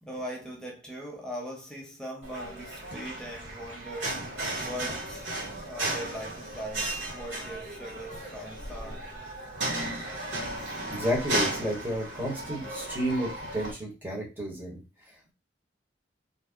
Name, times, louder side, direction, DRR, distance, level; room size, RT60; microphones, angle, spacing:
voice 1, 0.0-9.1, equal, 5° left, 0.5 m, -40 dB
sound 1, 2.2-13.7, right 1 dB, 80° right, 1.4 m, -35 dB
voice 2, 10.7-14.8, equal, 10° right, 1.1 m, -32 dB
2.7 x 2.2 x 3.5 m
head